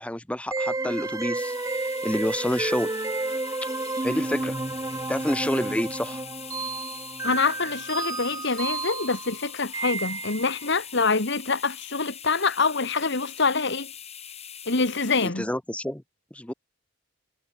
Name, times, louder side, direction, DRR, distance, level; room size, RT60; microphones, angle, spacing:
voice 1, 0.0-2.9 3.6-3.7 4.0-4.5 5.1-6.2 15.2-16.0 16.3-16.5, left 1 dB, 5° left, 1.0 m, -28 dB
sound 1, 0.5-10.7, right 2 dB, 15° right, 0.7 m, -31 dB
sound 2, 1.3-15.3, left 8 dB, 35° left, 5.6 m, -42 dB
voice 2, 7.2-13.9 14.7-15.5, left 4 dB, 60° left, 2.0 m, -25 dB
head